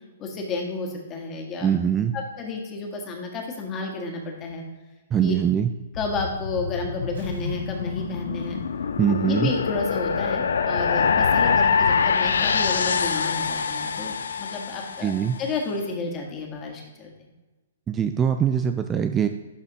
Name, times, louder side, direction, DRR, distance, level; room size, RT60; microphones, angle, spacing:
voice 1, 0.2-1.7 2.1-4.6 5.2-5.3 6.0-8.6 9.2-15.1 15.4-17.1, left 3 dB, 25° left, 1 dB, 1.6 m, -31 dB
voice 2, 1.6-2.2 5.1-5.7 9.0-9.5 15.0-15.4 17.9-19.3, right 8 dB, 20° right, 8 dB, 0.3 m, -22 dB
sound 1, 5.9-15.3, left 6 dB, 65° left, 0.4 m, -25 dB
Explosion, 7.1-9.7 10.1-10.2, equal, 80° right, 2.2 m, -46 dB
11.5 x 4.0 x 3.0 m, 1.2 s
figure-of-eight pair, 115°, 0 cm